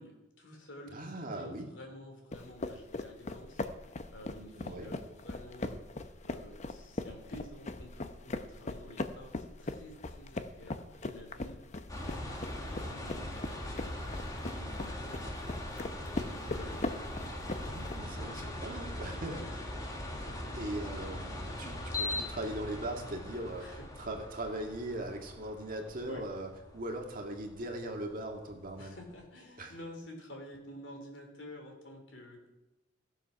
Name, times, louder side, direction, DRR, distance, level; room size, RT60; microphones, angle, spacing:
voice 1, 0.0-11.6 11.9-16.9 18.1-18.8 19.1-19.5 20.1-20.7 23.6-23.7 26.1-26.2 28.8-32.5, left 1 dB, 75° left, 1 dB, 3.5 m, -51 dB
voice 2, 0.9-1.7 4.5-4.9 17.5-19.4 20.2-29.0 29.6-29.7, right 1 dB, 45° right, 2 dB, 2.0 m, -40 dB
sound 1, 2.3-18.0, left 2 dB, 40° left, 0.7 m, -40 dB
sound 2, 11.9-29.1, left 1 dB, 20° left, 1.7 m, -41 dB
15.5 x 7.2 x 5.8 m, 0.97 s
head